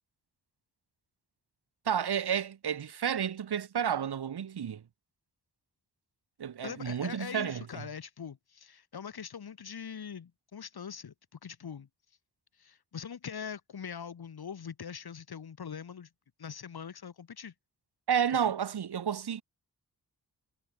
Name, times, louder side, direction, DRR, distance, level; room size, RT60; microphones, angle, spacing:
voice 1, 1.9-4.8 6.4-7.8 18.1-19.4, right 8 dB, 80° right, 1.9 m, -31 dB
voice 2, 6.6-11.9 12.6-16.1 16.4-17.5, left 7 dB, 70° left, 3.1 m, -42 dB
wide cardioid pair, 110°, 38 cm